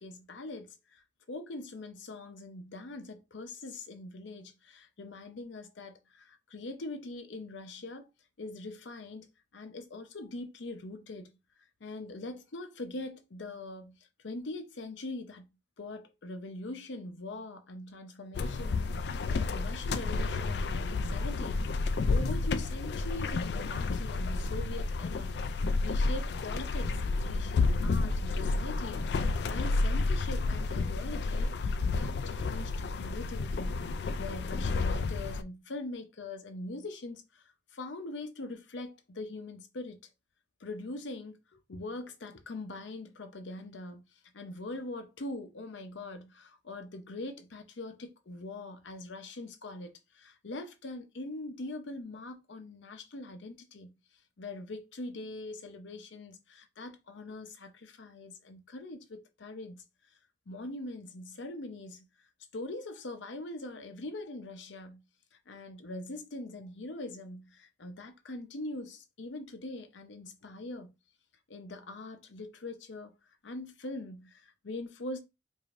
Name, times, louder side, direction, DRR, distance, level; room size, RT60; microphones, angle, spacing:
voice 1, 0.0-8.1 8.4-9.3 9.5-11.3 11.8-15.5 15.8-25.4 25.8-33.8 34.2-40.1 40.6-44.1 44.3-53.9 54.4-59.8 60.5-62.1 62.5-65.1 65.5-70.9 71.5-73.1 73.4-75.2, left 2 dB, 80° left, 0.7 m, -42 dB
sound 1, 18.3-35.4, left 3 dB, 60° left, 0.3 m, -31 dB
4.9 x 2.6 x 2.5 m
head